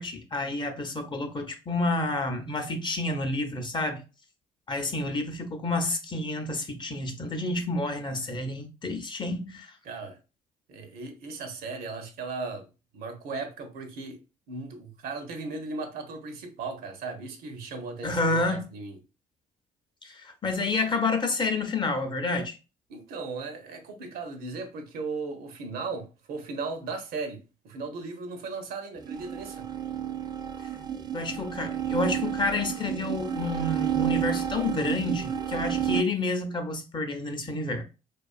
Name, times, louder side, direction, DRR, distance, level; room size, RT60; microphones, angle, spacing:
voice 1, 0.0-4.0 4.7-9.7 18.0-18.6 20.0-22.6 31.1-37.8, left 2 dB, 30° left, 0.6 m, -29 dB
voice 2, 9.9-10.2 10.7-12.7 12.9-14.2 14.5-19.0 22.9-29.7, right 4 dB, 70° right, 0.6 m, -37 dB
sound 1, 29.0-36.0, right 9 dB, 25° right, 0.4 m, -31 dB
2.4 x 2.3 x 2.3 m
supercardioid pair, 60°, 16 cm